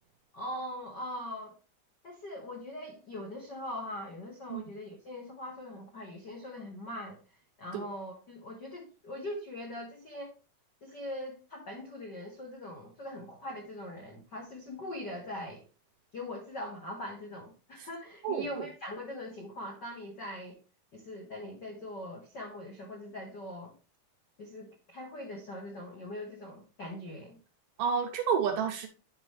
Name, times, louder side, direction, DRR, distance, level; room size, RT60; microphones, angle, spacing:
voice 1, 0.3-1.5 2.0-7.2 7.6-10.3 10.8-15.6 16.1-20.6 20.9-23.7 24.4-27.4, left 1 dB, 65° left, -1 dB, 1.0 m, -41 dB
voice 2, 18.2-18.7 27.8-28.9, right 6 dB, 75° right, 3 dB, 2.1 m, -30 dB
9.7 x 5.5 x 3.1 m, 0.32 s
omnidirectional pair, 4.4 m